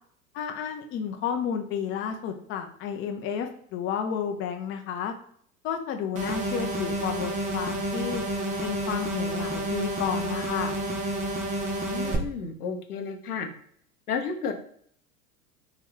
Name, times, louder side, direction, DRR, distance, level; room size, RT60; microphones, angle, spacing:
voice 1, 0.3-5.1 5.6-8.2 8.6-10.7, left 8 dB, 30° left, 5 dB, 0.5 m, -31 dB
sound 1, 6.2-12.2, right 1 dB, 15° right, 0.6 m, -30 dB
voice 2, 11.9-13.5 14.1-14.5, left 5 dB, 85° left, 5 dB, 0.7 m, -32 dB
2.9 x 2.3 x 3.4 m, 0.63 s
hypercardioid pair, 85°, 44 cm